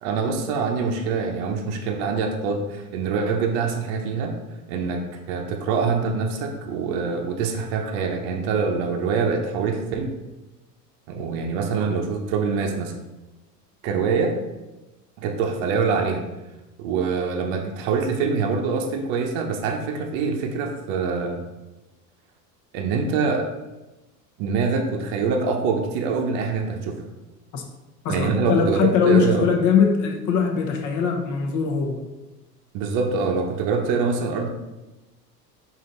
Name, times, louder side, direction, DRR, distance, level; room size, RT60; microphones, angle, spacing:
voice 1, 0.0-4.3 4.7-10.1 11.1-12.9 13.8-14.4 15.2-16.2 16.8-21.4 22.7-23.5 24.4-27.0 28.1-28.8 29.1-29.5 32.7-34.5, right 5 dB, 50° right, 2 dB, 0.8 m, -24 dB
voice 2, 28.0-32.0, left 6 dB, 35° left, 2 dB, 0.9 m, -21 dB
5.0 x 2.7 x 3.9 m, 1.0 s
hypercardioid pair, 85°, 48 cm